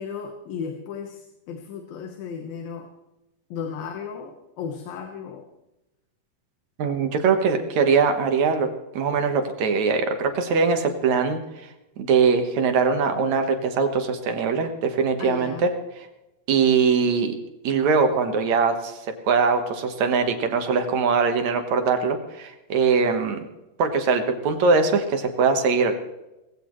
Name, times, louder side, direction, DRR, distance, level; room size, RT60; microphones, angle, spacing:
voice 1, 0.0-2.9 3.5-5.4 7.3-7.9 15.2-15.7, left 6 dB, 80° left, 4 dB, 3.0 m, -35 dB
voice 2, 6.8-8.7 8.9-11.4 12.0-15.7 16.0-16.1 16.5-17.4 17.6-19.0 19.3-23.4 23.8-26.0, right 5 dB, 60° right, 6 dB, 2.4 m, -21 dB
20.0 x 15.5 x 3.2 m, 0.96 s
omnidirectional pair, 4.1 m